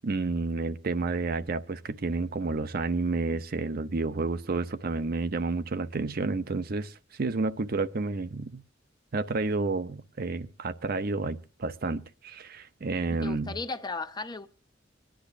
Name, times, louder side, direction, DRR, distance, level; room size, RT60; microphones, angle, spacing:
voice 1, 0.0-8.6 9.1-13.5, right 3 dB, 50° right, 0.6 m, -30 dB
voice 2, 13.1-14.5, left 3 dB, 20° left, 0.7 m, -35 dB
25.0 x 10.0 x 2.5 m
head